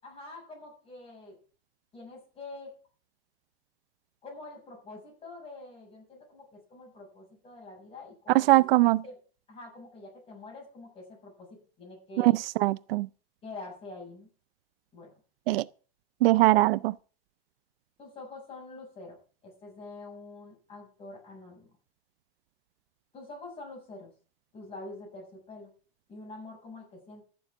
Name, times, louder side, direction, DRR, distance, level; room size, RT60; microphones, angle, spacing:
voice 1, 0.0-1.3 1.9-2.7 4.2-8.7 9.0-9.2 9.5-12.3 13.4-14.3 14.9-15.1 18.0-19.2 19.4-21.7 23.1-24.1 24.5-25.7 26.1-27.2, left 2 dB, 20° left, 7.2 m, -46 dB
voice 2, 8.3-9.0 12.2-13.1 15.5-15.6 16.2-16.9, right 18 dB, 75° right, 0.5 m, -22 dB
13.5 x 7.1 x 7.2 m
supercardioid pair, 155°, 29 cm